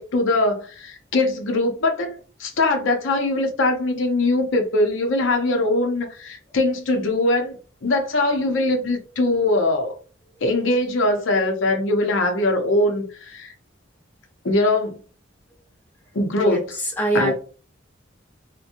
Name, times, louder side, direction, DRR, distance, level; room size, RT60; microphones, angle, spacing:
voice 1, 0.0-7.6 7.8-9.9 10.4-13.5 14.4-15.0 16.1-16.6 17.1-17.3, left 2 dB, 70° left, 0.6 m, -21 dB
voice 2, 17.0-17.3, right 1 dB, 10° left, 0.6 m, -22 dB
2.7 x 2.1 x 2.5 m
head